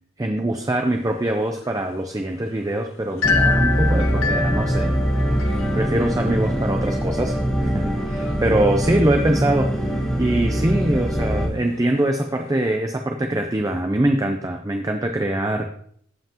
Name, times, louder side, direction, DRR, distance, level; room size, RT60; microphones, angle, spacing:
voice 1, 0.2-5.0 5.7-15.7, right 1 dB, 15° right, 4 dB, 0.5 m, -23 dB
sound 1, 0.6-12.8, left 5 dB, 70° left, 0.9 m, -31 dB
sound 2, 3.2-11.5, equal, 5° left, 1.5 m, -22 dB
14.5 x 5.7 x 2.9 m, 0.63 s
head